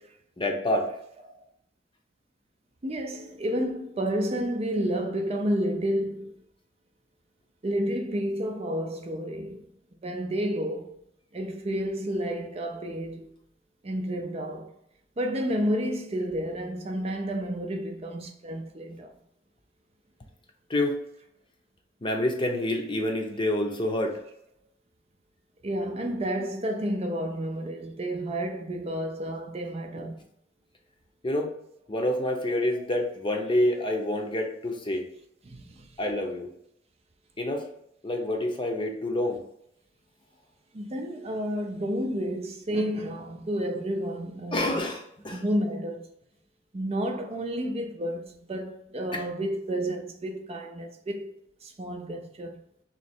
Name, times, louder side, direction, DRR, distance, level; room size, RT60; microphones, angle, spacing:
voice 1, 0.4-0.9 20.7-21.0 22.0-24.1 31.2-31.5 31.9-35.0 36.0-36.5 37.4-37.6 38.0-39.4 44.5-45.4 49.1-49.2, left 1 dB, 25° left, 0.7 m, -27 dB
voice 2, 2.8-6.4 7.6-9.7 10.0-11.0 11.3-13.3 13.8-14.7 15.2-19.1 25.6-30.2 32.7-32.8 35.4-35.9 40.7-44.8 45.3-46.1 46.7-52.6, equal, 35° right, 0.5 m, -31 dB
3.2 x 3.1 x 4.3 m
head